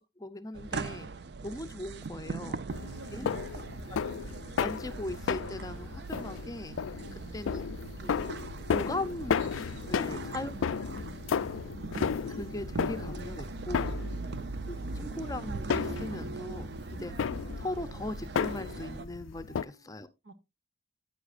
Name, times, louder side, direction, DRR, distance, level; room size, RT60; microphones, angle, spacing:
voice 1, 0.2-1.1 1.4-2.6 3.1-3.3 3.9-4.2 4.6-6.8 7.3-7.6 8.0-8.4 8.7-9.5 9.9-10.5 12.3-14.0 14.7-17.1 17.6-20.1, left 1 dB, 20° left, 0.5 m, -39 dB
sound 1, 0.5-19.0, right 3 dB, 55° right, 0.5 m, -40 dB
voice 2, 2.4-3.5 7.0-7.5 9.9-11.2 14.0-14.4 16.9-17.0 19.5-20.0 20.2-20.3, right 1 dB, 75° right, 1.2 m, -50 dB
sound 2, 2.7-19.6, left 6 dB, 85° left, 0.4 m, -34 dB
Car / Accelerating revving vroom, 11.9-17.9, equal, 40° right, 3.3 m, -65 dB
9.9 x 8.9 x 2.5 m
head